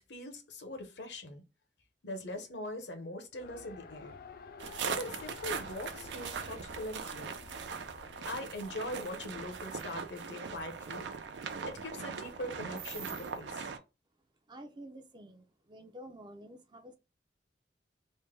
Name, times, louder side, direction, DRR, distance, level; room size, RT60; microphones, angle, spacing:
voice 1, 0.0-1.4 2.0-4.1 4.8-7.3 8.3-11.1 11.7-13.6, left 1 dB, 75° left, 0.9 m, -42 dB
Race car auto racing, 3.4-8.6, left 5 dB, 55° left, 0.4 m, -51 dB
sound 1, 4.6-13.8, right 6 dB, 80° right, 0.4 m, -40 dB
sound 2, 8.9-9.1 9.6-9.9 12.8-13.4, right 6 dB, 55° right, 0.8 m, -45 dB
voice 2, 14.5-17.0, equal, 25° right, 0.5 m, -50 dB
3.2 x 2.2 x 3.1 m
head